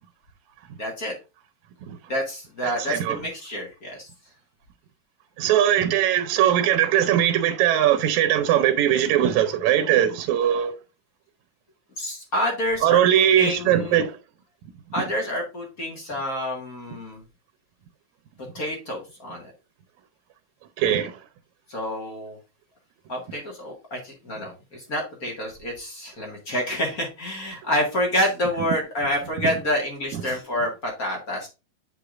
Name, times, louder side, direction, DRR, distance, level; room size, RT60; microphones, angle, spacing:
voice 1, 0.8-1.1 2.1-4.1 12.0-14.0 14.9-17.2 18.5-19.5 21.7-22.4 23.1-31.5, left 1 dB, 35° left, 1.6 m, -28 dB
voice 2, 2.6-3.2 5.4-10.7 12.8-14.1 20.8-21.1, right 11 dB, 85° right, 2.0 m, -20 dB
8.5 x 5.0 x 2.4 m
omnidirectional pair, 3.4 m